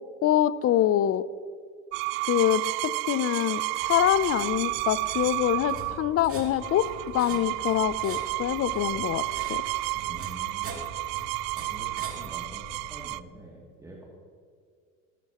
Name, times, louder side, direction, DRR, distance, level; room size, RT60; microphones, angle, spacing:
voice 1, 0.2-1.2 2.3-2.6 3.1-6.9 7.1-9.2 9.5-9.6, left 12 dB, 35° left, 17 dB, 0.6 m, -25 dB
sound 1, 1.9-13.2, right 21 dB, 55° right, 0.5 m, -31 dB
sound 2, 3.8-13.1, right 3 dB, 35° right, 2.8 m, -43 dB
voice 2, 10.1-10.9 11.5-14.0, right 2 dB, 10° right, -4 dB, 2.6 m, -46 dB
19.0 x 13.0 x 3.0 m, 2.1 s
supercardioid pair, 95°, 41 cm